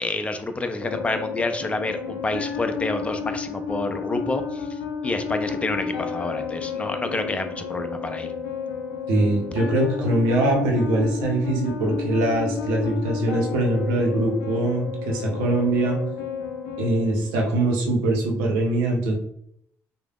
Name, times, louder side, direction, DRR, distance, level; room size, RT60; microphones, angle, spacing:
voice 1, 0.0-4.7 5.0-8.3, left 2 dB, 20° left, 7 dB, 0.4 m, -28 dB
sound 1, 0.8-17.8, left 6 dB, 85° left, 0.5 m, -32 dB
voice 2, 9.1-16.0 16.8-19.2, right 1 dB, 85° right, 0 dB, 0.7 m, -22 dB
3.2 x 2.0 x 2.3 m, 0.71 s
supercardioid pair, 60°, 7 cm